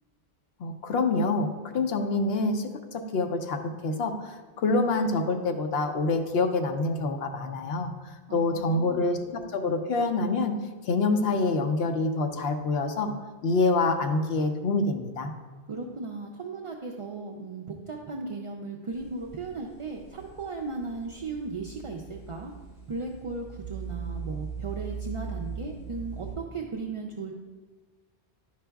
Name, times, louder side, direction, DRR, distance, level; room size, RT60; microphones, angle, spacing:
voice 1, 0.6-7.9 8.3-10.5 10.9-13.1 13.4-15.3, left 3 dB, 70° left, 5 dB, 0.8 m, -26 dB
voice 2, 8.3-9.1 15.7-22.5 22.9-27.3, right 3 dB, 55° right, 0 dB, 0.3 m, -36 dB
sound 1, 18.9-26.4, right 6 dB, 45° left, 1.1 m, -40 dB
11.0 x 5.0 x 2.3 m, 1.3 s
omnidirectional pair, 1.1 m